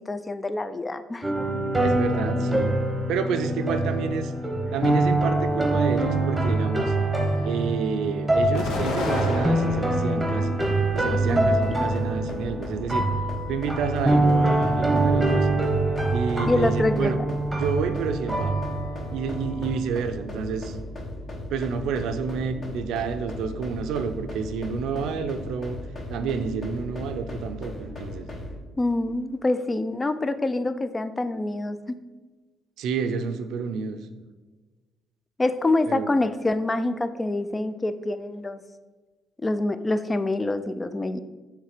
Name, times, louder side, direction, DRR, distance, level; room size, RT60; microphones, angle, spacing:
voice 1, 0.1-1.3 11.2-11.9 16.4-17.2 28.8-32.0 35.4-38.6 39.4-41.2, left 2 dB, 20° left, 11 dB, 0.4 m, -26 dB
sound 1, 1.2-19.8, right 2 dB, 5° right, 1.0 m, -24 dB
voice 2, 1.8-2.8 3.1-4.3 4.7-6.9 7.4-10.6 10.9-13.1 13.5-15.5 16.1-17.2 17.5-18.5 19.1-20.8 21.5-25.8 26.1-28.3 32.8-34.0 35.9-36.1, right 6 dB, 80° right, 8 dB, 0.5 m, -29 dB
Explosion, 8.5-10.2 10.7-11.6, left 2 dB, 80° left, 1.0 m, -30 dB
sound 2, 10.5-28.6, left 1 dB, 40° left, 1.4 m, -37 dB
6.5 x 3.3 x 4.9 m, 1.3 s
cardioid pair, 100°, 0 cm